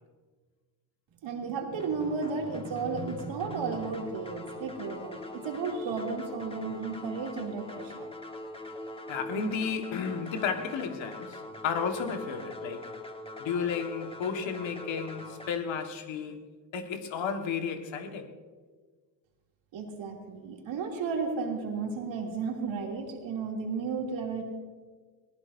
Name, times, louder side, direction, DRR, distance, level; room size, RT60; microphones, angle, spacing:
voice 1, 1.2-8.1 19.7-24.4, right 4 dB, 70° right, 2.8 m, -33 dB
sound 1, 1.8-15.5, left 1 dB, 10° left, 1.4 m, -43 dB
voice 2, 9.1-12.9 13.4-16.4 16.7-18.3, left 6 dB, 65° left, 1.7 m, -33 dB
21.0 x 17.0 x 2.7 m
supercardioid pair, 70°, 48 cm